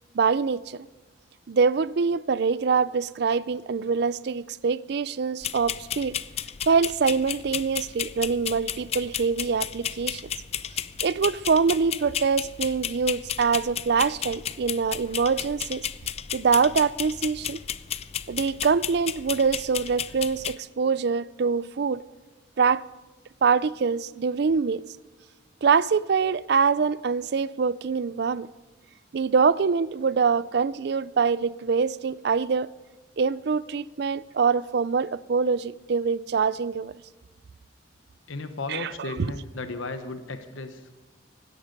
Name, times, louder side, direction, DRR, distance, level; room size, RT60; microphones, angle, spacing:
voice 1, 0.1-0.8 1.5-6.1 6.7-10.2 11.0-15.8 16.3-17.6 18.3-22.0 22.6-22.8 23.4-24.8 25.6-28.5 29.1-32.7 33.2-36.9 38.7-38.9, right 5 dB, 55° right, 0.4 m, -24 dB
sound 1, 5.4-20.5, left 9 dB, 30° left, 0.4 m, -33 dB
voice 2, 38.3-41.0, left 3 dB, 85° left, 1.1 m, -35 dB
16.5 x 12.5 x 5.3 m
head